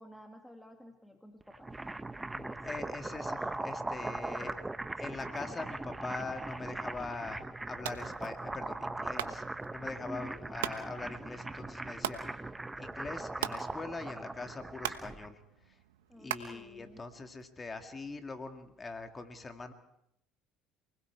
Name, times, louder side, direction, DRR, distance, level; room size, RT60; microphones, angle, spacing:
voice 1, 0.0-1.7 10.1-10.5 16.1-17.0, equal, 5° left, 4 dB, 2.1 m, -50 dB
sound 1, 1.4-15.3, right 2 dB, 15° right, 0.8 m, -40 dB
voice 2, 2.3-4.6 5.0-9.4 9.7-12.4 12.8-15.4 15.7-15.8 16.2-19.7, left 3 dB, 25° left, 6 dB, 2.2 m, -42 dB
sound 2, 7.7-17.5, right 12 dB, 85° right, 1.1 m, -43 dB
28.0 x 20.5 x 4.7 m, 0.79 s
hypercardioid pair, 75°, 0 cm